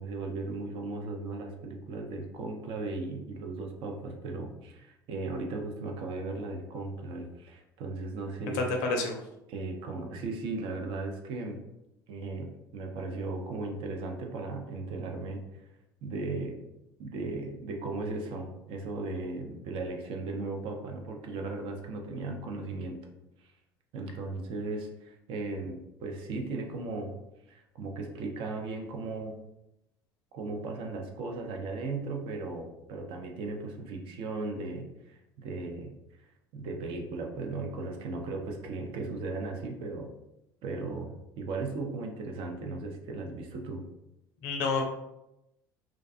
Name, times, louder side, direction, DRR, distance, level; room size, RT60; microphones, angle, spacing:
voice 1, 0.0-8.6 9.5-11.6 12.1-15.4 16.0-16.6 17.0-23.1 23.9-27.1 27.5-29.4 30.3-36.0 36.5-40.1 40.6-43.9, right 3 dB, 50° right, 2 dB, 0.5 m, -36 dB
voice 2, 8.5-9.2 44.4-44.8, left 3 dB, 60° left, 3 dB, 0.5 m, -28 dB
2.4 x 2.2 x 2.5 m, 0.87 s
figure-of-eight pair, 65°, 12 cm